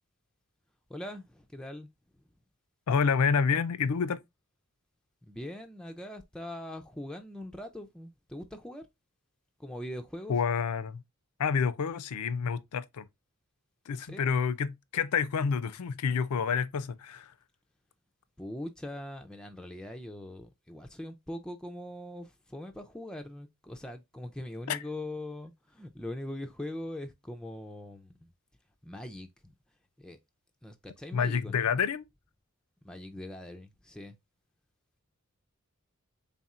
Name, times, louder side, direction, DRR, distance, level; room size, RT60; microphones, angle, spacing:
voice 1, 0.9-2.2 5.2-8.9 9.6-10.3 14.0-14.3 18.4-28.3 28.8-29.5 30.0-30.2 30.6-31.7 32.8-34.2, left 1 dB, 5° left, 0.3 m, -42 dB
voice 2, 2.9-4.2 10.3-11.0 11.4-13.1 13.9-17.3 24.7-24.8 31.1-32.0, left 6 dB, 85° left, 0.4 m, -28 dB
4.2 x 3.5 x 2.4 m
head